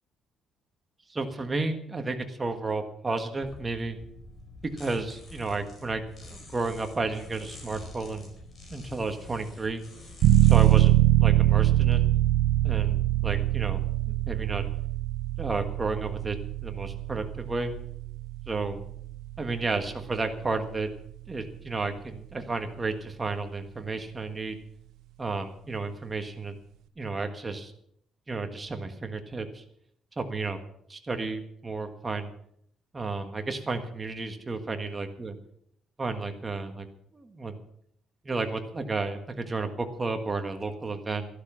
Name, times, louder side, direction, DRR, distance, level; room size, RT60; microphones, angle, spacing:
voice 1, 1.1-4.0 4.8-8.3 8.7-9.8 10.5-12.0 12.6-13.8 14.3-14.6 15.4-16.4 16.6-17.7 18.5-18.8 19.4-20.9 21.3-24.6 25.2-26.5 27.0-27.7 28.3-29.6 30.2-30.6 30.9-32.3 32.9-35.3 36.0-36.9 37.1-37.6 38.2-41.3, right 3 dB, 20° right, 6 dB, 1.5 m, -32 dB
sound 1, 3.4-12.0, left 2 dB, 30° left, 4.7 m, -46 dB
sound 2, 10.2-20.8, right 14 dB, 80° right, 1.0 m, -24 dB
12.5 x 11.5 x 6.2 m, 0.69 s
cardioid pair, 145°, 0 cm